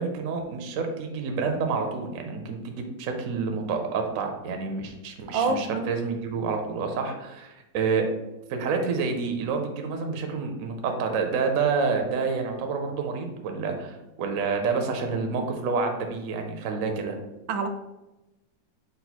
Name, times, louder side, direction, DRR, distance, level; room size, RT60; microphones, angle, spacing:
voice 1, 0.0-8.1 8.5-17.2, right 5 dB, 65° right, 4 dB, 0.8 m, -28 dB
voice 2, 5.3-5.9 17.5-17.7, right 4 dB, 80° right, 6 dB, 1.3 m, -26 dB
5.3 x 2.4 x 4.1 m, 0.99 s
omnidirectional pair, 2.1 m